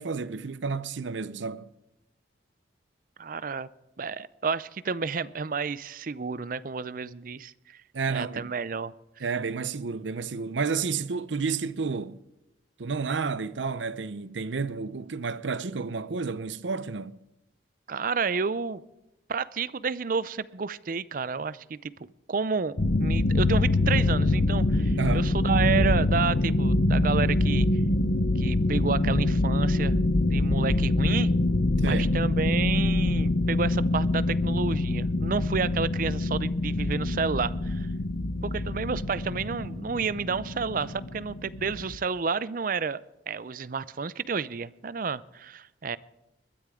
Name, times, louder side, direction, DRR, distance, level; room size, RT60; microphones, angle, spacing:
voice 1, 0.0-1.7 7.9-8.5 9.2-12.2 12.8-17.2 25.0-25.3 31.8-32.1, right 5 dB, 85° right, 0.7 m, -31 dB
voice 2, 3.2-3.7 4.0-7.5 8.1-8.9 17.9-18.8 19.3-21.9 22.3-27.7 28.4-30.0 30.3-31.3 31.8-37.9 38.4-43.0 43.3-46.0, right 5 dB, 50° right, 0.5 m, -30 dB
sound 1, 22.8-42.0, left 2 dB, 60° left, 0.8 m, -25 dB
21.0 x 13.0 x 3.7 m
head